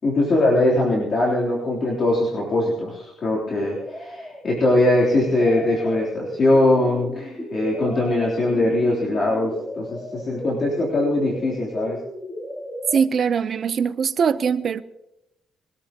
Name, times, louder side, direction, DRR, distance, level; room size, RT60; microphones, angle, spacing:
voice 1, 0.0-12.0, left 1 dB, 45° left, 3.6 m, -21 dB
sound 1, 3.5-13.0, equal, 10° left, 3.8 m, -35 dB
voice 2, 12.9-14.8, right 6 dB, 50° right, 0.8 m, -21 dB
22.5 x 13.5 x 3.0 m
cardioid pair, 90°, 0 cm